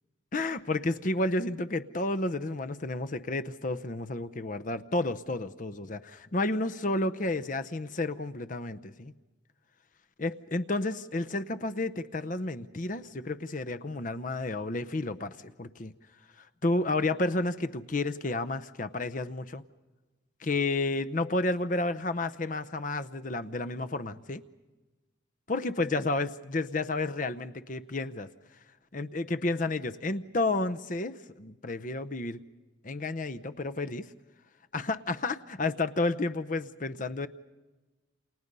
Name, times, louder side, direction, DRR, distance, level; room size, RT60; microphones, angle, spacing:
voice 1, 0.3-9.1 10.2-15.9 16.4-19.6 20.4-24.4 25.5-28.3 28.9-32.4 32.8-34.1 34.7-37.3, left 2 dB, 40° left, 11 dB, 0.7 m, -31 dB
29.0 x 28.5 x 5.4 m, 1.2 s
head